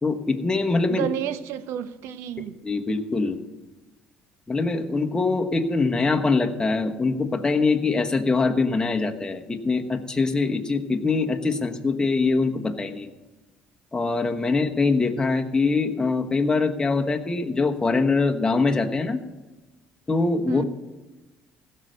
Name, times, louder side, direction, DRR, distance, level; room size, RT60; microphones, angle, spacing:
voice 1, 0.0-1.0 2.4-3.4 4.5-13.1 13.9-19.2 20.1-20.7, left 3 dB, 20° left, 1.2 m, -23 dB
voice 2, 0.9-2.6 20.5-20.7, right 10 dB, 75° right, 0.8 m, -30 dB
15.5 x 6.6 x 6.7 m
supercardioid pair, 90°, 4 cm